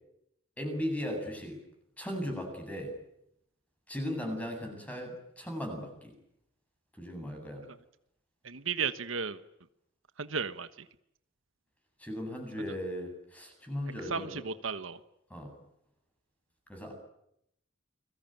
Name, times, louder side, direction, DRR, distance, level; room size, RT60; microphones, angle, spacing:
voice 1, 0.6-1.6 2.0-2.9 3.9-6.2 7.0-7.6 12.0-14.4 15.3-15.5 16.7-16.9, equal, 5° left, 4 dB, 7.9 m, -37 dB
voice 2, 8.4-9.4 10.2-10.7 14.1-15.0, right 5 dB, 80° right, 12 dB, 1.3 m, -34 dB
29.5 x 21.0 x 9.2 m, 0.77 s
head